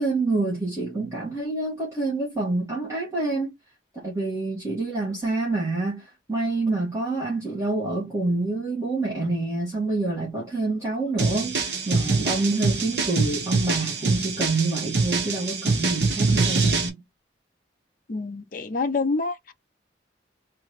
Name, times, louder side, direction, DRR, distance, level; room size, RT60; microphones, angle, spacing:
voice 1, 0.0-3.5 3.9-17.0, right 2 dB, 15° right, 1.9 m, -27 dB
sound 1, 11.2-16.9, right 3 dB, 65° right, 1.2 m, -24 dB
voice 2, 18.1-19.5, left 3 dB, 50° left, 0.6 m, -27 dB
3.8 x 3.2 x 3.1 m
head